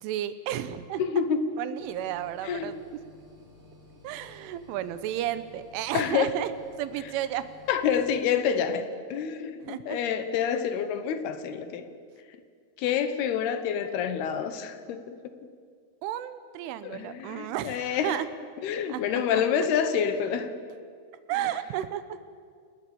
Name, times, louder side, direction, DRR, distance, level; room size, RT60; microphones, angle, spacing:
voice 1, 0.0-1.0 1.6-2.8 4.0-6.5 6.8-7.4 9.6-10.0 16.0-18.3 18.9-19.0 21.3-22.2, right 12 dB, 85° right, 12 dB, 3.4 m, -32 dB
voice 2, 1.0-1.6 2.4-2.8 5.9-6.3 7.7-11.9 12.8-15.4 16.8-18.2 18.6-20.5, left 7 dB, 70° left, 10 dB, 2.8 m, -28 dB
sound 1, 1.8-8.2, left 2 dB, 40° right, 7.6 m, -54 dB
28.5 x 19.5 x 7.0 m, 2.1 s
omnidirectional pair, 5.6 m